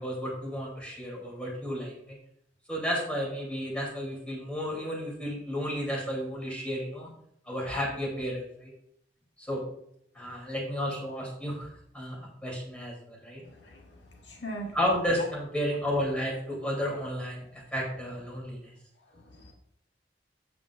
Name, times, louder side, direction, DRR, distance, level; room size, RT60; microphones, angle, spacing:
voice 1, 0.0-2.2 2.7-7.1 7.5-8.7 9.4-9.6 10.1-11.7 11.9-12.2 12.4-13.4 14.7-18.7, equal, 5° left, -5 dB, 2.7 m, -32 dB
voice 2, 13.4-14.8 19.1-19.5, right 1 dB, 85° left, 0 dB, 1.4 m, -41 dB
8.0 x 7.2 x 2.3 m, 0.71 s
head